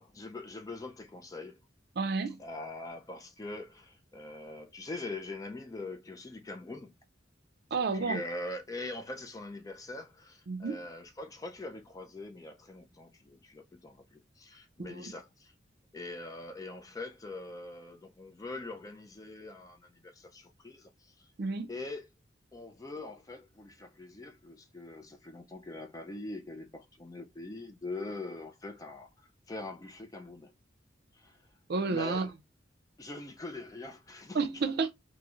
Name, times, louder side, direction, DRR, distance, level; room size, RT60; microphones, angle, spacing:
voice 1, 0.0-1.6 2.4-6.9 7.9-15.5 15.9-21.3 21.7-22.0 22.5-30.5 31.1-31.4 31.8-32.3 33.0-34.6, left 2 dB, 20° left, 0.4 m, -43 dB
voice 2, 2.0-2.4 7.7-8.2 10.5-10.8 14.8-15.1 21.4-21.7 31.7-32.3 34.3-34.9, right 4 dB, 60° right, 0.5 m, -31 dB
3.0 x 2.6 x 2.4 m
head